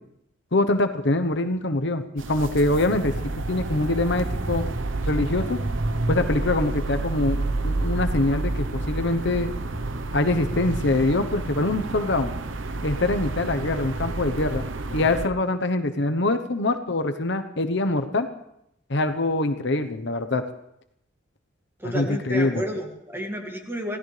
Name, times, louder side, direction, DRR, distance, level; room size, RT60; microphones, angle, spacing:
voice 1, 0.5-2.0 2.3-3.1 3.5-4.7 5.1-5.6 6.1-9.5 10.1-12.3 12.8-14.6 14.9-18.3 18.9-20.4 21.8-22.6, left 2 dB, 65° left, 8 dB, 1.0 m, -24 dB
sound 1, 2.2-15.3, right 2 dB, 80° right, 0.9 m, -29 dB
voice 2, 21.8-24.0, equal, 10° right, 2 dB, 2.1 m, -31 dB
26.0 x 16.5 x 3.3 m, 0.78 s
head